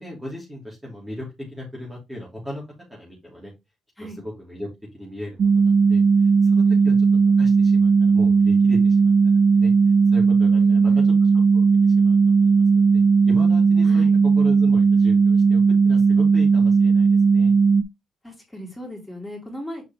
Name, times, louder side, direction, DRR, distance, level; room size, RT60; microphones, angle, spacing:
voice 1, 0.0-2.6 2.9-3.5 4.2-4.7 4.9-9.7 10.1-11.1 11.5-12.9 13.2-14.0 14.3-17.5, left 1 dB, 10° right, -3 dB, 2.8 m, -38 dB
sound 1, 5.4-17.8, right 5 dB, 50° right, 0.4 m, -17 dB
voice 2, 10.5-11.1 13.8-14.2 18.2-19.9, left 1 dB, 5° left, 0 dB, 3.3 m, -37 dB
6.7 x 4.6 x 3.0 m, 0.22 s
cardioid pair, 90°, 0 cm